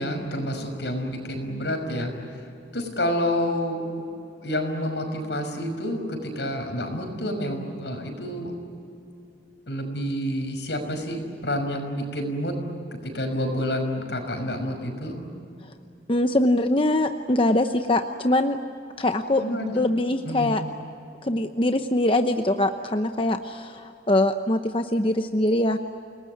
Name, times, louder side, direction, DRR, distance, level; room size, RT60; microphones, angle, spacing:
voice 1, 0.0-2.4 2.7-4.0 4.4-8.5 9.7-12.6 13.0-15.2 19.4-19.8 20.2-20.5, equal, 75° left, 5 dB, 5.9 m, -29 dB
voice 2, 16.1-18.6 19.0-19.4 19.7-20.6 21.2-25.8, left 1 dB, 30° left, 6 dB, 0.9 m, -23 dB
30.0 x 20.0 x 9.4 m, 2.6 s
head